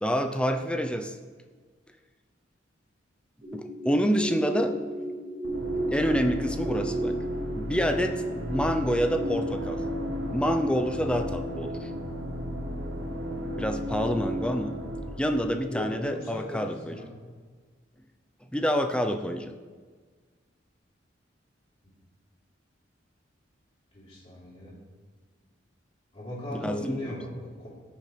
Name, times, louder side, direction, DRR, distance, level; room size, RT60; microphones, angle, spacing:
voice 1, 0.0-1.2 3.5-4.7 5.9-7.1 7.6-9.8 10.3-11.9 13.6-14.8 15.2-17.0 18.5-19.5 26.5-27.1, equal, 5° left, 5 dB, 0.6 m, -27 dB
sound 1, 3.4-9.3, right 2 dB, 45° right, 2.4 m, -34 dB
sound 2, 5.4-16.2, equal, 85° right, 1.2 m, -34 dB
voice 2, 15.7-17.1 23.9-24.7 26.1-27.7, left 1 dB, 30° left, -6 dB, 3.7 m, -38 dB
18.0 x 7.0 x 3.3 m, 1.5 s
head